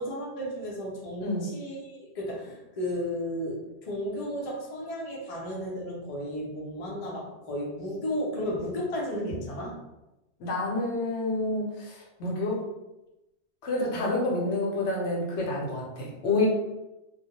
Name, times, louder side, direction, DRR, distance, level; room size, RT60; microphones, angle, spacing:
voice 1, 0.0-9.7, equal, 40° left, -4 dB, 0.6 m, -33 dB
voice 2, 10.4-12.6 13.6-16.5, left 2 dB, 80° left, -2 dB, 0.9 m, -28 dB
2.2 x 2.1 x 2.9 m, 0.98 s
omnidirectional pair, 1.2 m